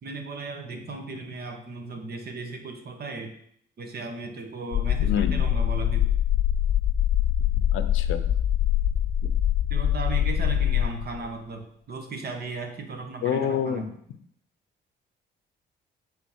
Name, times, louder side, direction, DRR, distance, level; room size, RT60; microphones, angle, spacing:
voice 1, 0.0-3.3 3.8-6.1 9.7-13.9, right 3 dB, 50° right, 5 dB, 1.4 m, -36 dB
sound 1, 4.7-11.3, left 11 dB, 45° left, 0.4 m, -24 dB
voice 2, 5.0-5.4 7.7-8.2 13.2-13.9, left 8 dB, 85° left, 11 dB, 0.7 m, -27 dB
8.4 x 3.8 x 4.6 m, 0.67 s
cardioid pair, 90°, 20 cm